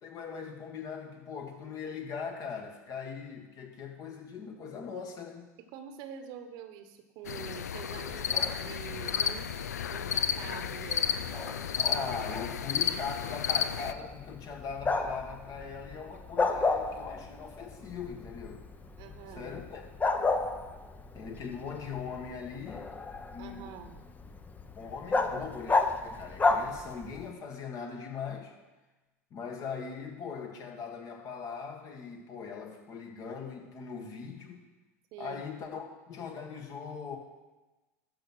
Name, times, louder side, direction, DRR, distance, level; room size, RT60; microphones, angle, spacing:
voice 1, 0.0-5.5 11.8-18.6 19.3-19.8 21.1-22.9 23.3-23.9 24.8-28.5 29.3-34.6 35.2-37.2, left 6 dB, 45° left, 3 dB, 1.7 m, -40 dB
voice 2, 5.7-9.5 9.9-11.1 19.0-19.5 23.4-24.1 35.1-35.4, right 8 dB, 55° right, 8 dB, 1.1 m, -45 dB
sound 1, 7.3-13.9, left 8 dB, 85° left, 0.4 m, -32 dB
Bark, 7.9-27.3, left 3 dB, 20° left, 0.8 m, -34 dB
12.5 x 4.7 x 6.1 m, 1.1 s
hypercardioid pair, 85°, 8 cm